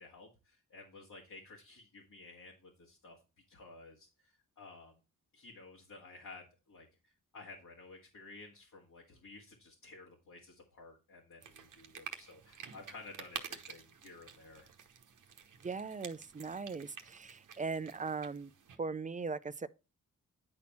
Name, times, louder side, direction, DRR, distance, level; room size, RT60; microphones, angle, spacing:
voice 1, 0.0-3.2 3.5-4.9 5.3-14.7, left 3 dB, 65° left, 1.9 m, -54 dB
sound 1, 11.4-18.8, right 7 dB, 65° right, 1.0 m, -50 dB
voice 2, 15.6-18.5 18.8-19.7, right 4 dB, 25° right, 0.5 m, -39 dB
9.8 x 4.2 x 4.2 m
cardioid pair, 55°, 33 cm